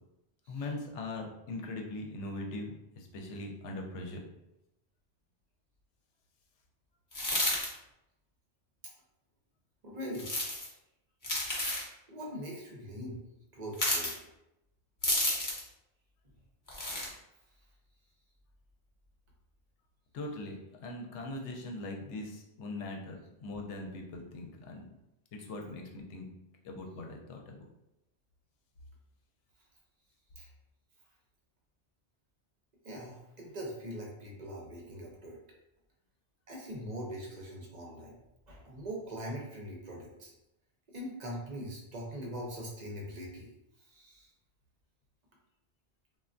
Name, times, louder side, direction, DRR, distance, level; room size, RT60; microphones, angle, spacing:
voice 1, 0.5-4.2 20.1-24.9 25.3-26.3 26.6-27.6, left 2 dB, 85° left, 1 dB, 0.9 m, -41 dB
sound 1, 7.1-7.7 10.1-10.7 11.2-11.9 13.7-14.1 15.0-15.7 16.7-17.1, left 1 dB, 25° left, 0.5 m, -31 dB
voice 2, 9.8-10.3 12.1-13.2 13.5-14.1 30.4-30.5 32.8-35.4 36.5-38.2 38.5-40.3 40.9-43.5 43.9-44.3, equal, 45° right, -2 dB, 0.6 m, -42 dB
3.2 x 2.2 x 2.5 m, 0.89 s
omnidirectional pair, 1.2 m